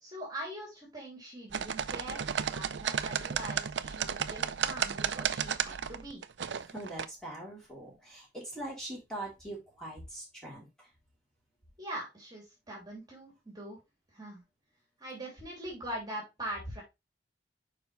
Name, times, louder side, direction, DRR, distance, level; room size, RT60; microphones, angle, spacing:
voice 1, 0.0-6.2 11.8-13.8 14.1-14.4 15.0-16.8, right 1 dB, 25° right, -3 dB, 3.0 m, -42 dB
sound 1, 1.5-7.1, right 7 dB, 80° right, 0.5 m, -33 dB
voice 2, 6.7-10.9, right 1 dB, 5° left, -4 dB, 3.4 m, -42 dB
6.9 x 5.1 x 3.2 m, 0.23 s
head